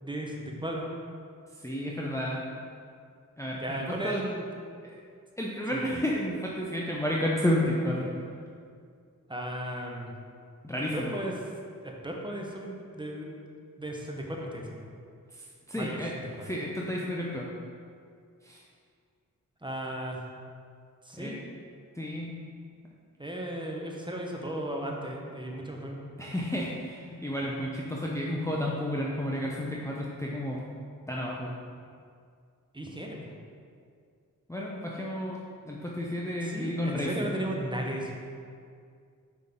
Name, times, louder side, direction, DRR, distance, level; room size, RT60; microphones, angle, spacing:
voice 1, 0.0-0.9 3.6-4.5 5.7-5.9 9.3-10.1 10.7-11.3 11.8-13.4 13.8-14.9 15.7-16.5 19.6-20.3 21.0-21.4 23.2-26.0 32.7-33.4 36.4-38.1, right 1 dB, 15° right, 0 dB, 1.1 m, -36 dB
voice 2, 1.6-2.4 3.4-4.2 4.8-5.0 5.4-8.1 10.6-11.2 15.3-16.1 16.4-17.5 18.4-18.6 21.1-21.3 22.0-22.4 26.2-30.6 31.1-31.5 34.5-37.3, left 1 dB, 10° left, -4 dB, 0.8 m, -31 dB
6.0 x 5.2 x 3.8 m, 2.2 s
cardioid pair, 45°, 35 cm